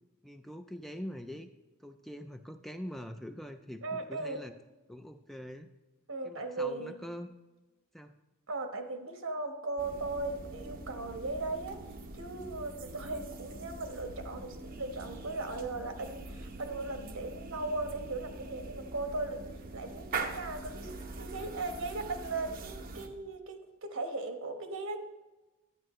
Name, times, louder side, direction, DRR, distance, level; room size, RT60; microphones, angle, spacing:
voice 1, 0.2-1.5 1.8-4.5 4.9-5.7 6.2-7.3 7.9-8.2, equal, ahead, 7 dB, 0.3 m, -43 dB
voice 2, 3.8-4.4 6.1-6.9 8.5-11.8 12.2-20.9 21.2-25.0, right 2 dB, 65° right, 5 dB, 1.2 m, -38 dB
sound 1, 9.8-23.1, right 3 dB, 45° right, 0.9 m, -43 dB
12.5 x 9.5 x 3.1 m, 1.1 s
head